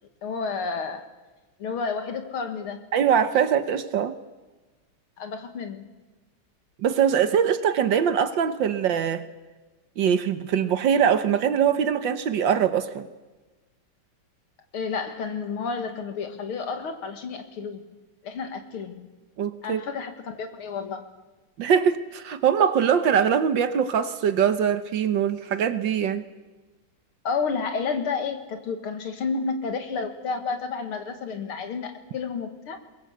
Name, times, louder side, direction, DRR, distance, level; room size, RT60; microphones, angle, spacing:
voice 1, 0.2-1.0 1.6-2.8 5.2-5.9 14.7-17.9 18.2-19.1 19.6-21.0 27.2-32.8, left 5 dB, 80° left, 2.7 m, -31 dB
voice 2, 2.9-4.2 6.8-9.3 10.0-13.1 19.4-19.8 21.6-26.2, right 8 dB, 65° right, 1.6 m, -22 dB
22.5 x 20.0 x 8.0 m
omnidirectional pair, 2.3 m